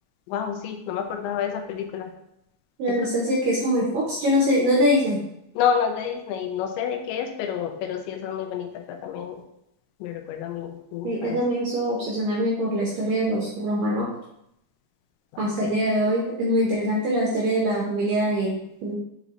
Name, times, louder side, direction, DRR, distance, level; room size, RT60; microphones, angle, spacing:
voice 1, 0.3-2.1 2.9-3.1 5.6-9.4 10.0-11.4 15.3-15.8, left 8 dB, 85° left, 5 dB, 2.9 m, -29 dB
voice 2, 2.8-5.2 11.0-14.1 15.4-19.0, equal, 75° right, -3 dB, 2.0 m, -23 dB
8.1 x 4.1 x 3.0 m, 0.79 s
omnidirectional pair, 5.2 m